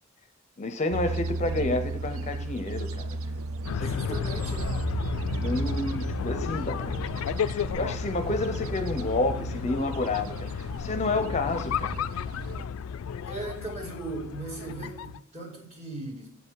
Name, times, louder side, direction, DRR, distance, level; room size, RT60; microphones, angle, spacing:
voice 1, 0.6-3.2 3.7-4.2 5.4-7.0 7.4-12.0, left 2 dB, 35° left, 9 dB, 0.5 m, -30 dB
sound 1, 0.9-12.7, right 3 dB, 85° right, 0.5 m, -35 dB
sound 2, 3.6-15.2, left 7 dB, 90° left, 0.3 m, -33 dB
voice 2, 3.7-4.9 13.3-16.3, right 2 dB, 35° right, 1 dB, 2.0 m, -38 dB
7.7 x 5.6 x 4.6 m, 0.72 s
head